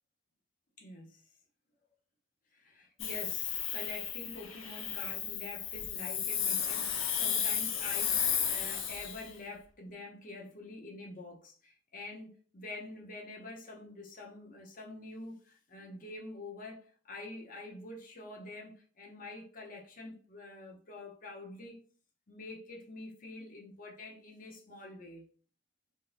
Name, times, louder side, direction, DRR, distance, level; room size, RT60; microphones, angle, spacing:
voice 1, 0.8-1.2 2.5-21.8 22.3-25.3, left 2 dB, 45° left, 0.7 m, -46 dB
Hiss, 3.0-9.3, left 8 dB, 80° left, 0.6 m, -33 dB
3.7 x 2.5 x 2.5 m
head